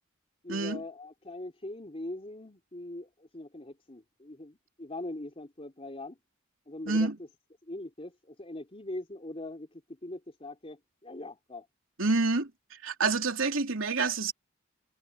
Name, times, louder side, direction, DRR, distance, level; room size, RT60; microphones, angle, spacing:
voice 1, 0.4-6.2 6.7-7.3 7.6-11.7, left 1 dB, 30° left, 3.3 m, -42 dB
voice 2, 12.0-12.5 12.8-14.3, right 3 dB, 75° right, 3.3 m, -27 dB
head